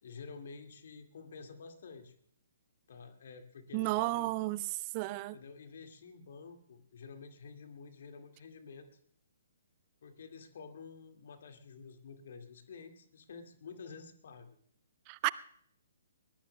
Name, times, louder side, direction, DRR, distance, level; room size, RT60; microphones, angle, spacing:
voice 1, 0.0-2.1 2.9-4.3 5.3-8.9 10.0-14.6, left 5 dB, 50° left, 6 dB, 2.0 m, -50 dB
voice 2, 3.7-4.6 4.9-5.4 15.1-15.3, right 20 dB, 30° right, 19 dB, 0.5 m, -32 dB
22.5 x 20.5 x 2.2 m, 0.63 s
figure-of-eight pair, 125°, 0 cm